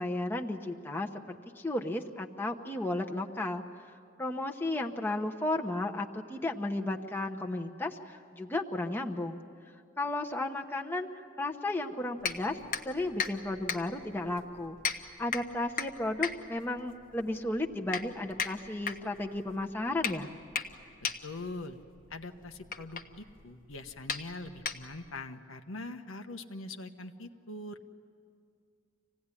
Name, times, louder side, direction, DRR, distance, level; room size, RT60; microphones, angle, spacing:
voice 1, 0.0-3.9 4.2-9.4 10.0-11.1 11.4-12.6 12.8-14.8 15.2-20.3, left 2 dB, 10° left, 2 dB, 0.9 m, -34 dB
sound 1, 12.2-25.2, left 6 dB, 40° left, 1.1 m, -38 dB
voice 2, 21.2-21.8 22.1-27.8, left 2 dB, 85° left, 6 dB, 1.2 m, -42 dB
26.0 x 17.5 x 9.9 m, 2.4 s
head